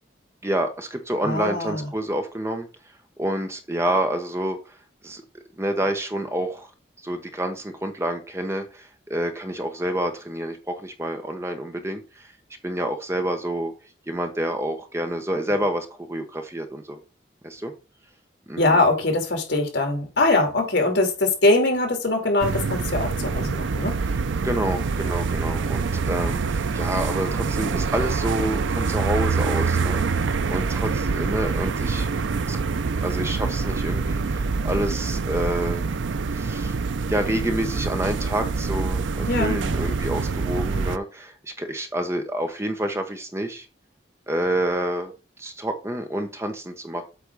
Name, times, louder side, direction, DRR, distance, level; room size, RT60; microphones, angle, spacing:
voice 1, 0.4-2.7 3.2-4.8 5.0-5.2 5.6-6.7 7.0-12.3 12.6-13.7 14.1-17.0 17.4-17.7 18.5-18.9 24.4-32.1 32.5-32.6 33.0-35.9 36.3-36.8 37.1-43.7 44.3-45.1 45.4-47.0, right 1 dB, 15° right, 0.9 m, -28 dB
voice 2, 1.2-1.8 18.6-24.0 39.3-39.6, left 2 dB, 70° left, 2.5 m, -22 dB
sound 1, 22.4-41.0, right 4 dB, 85° right, 0.5 m, -25 dB
8.2 x 3.4 x 6.1 m
head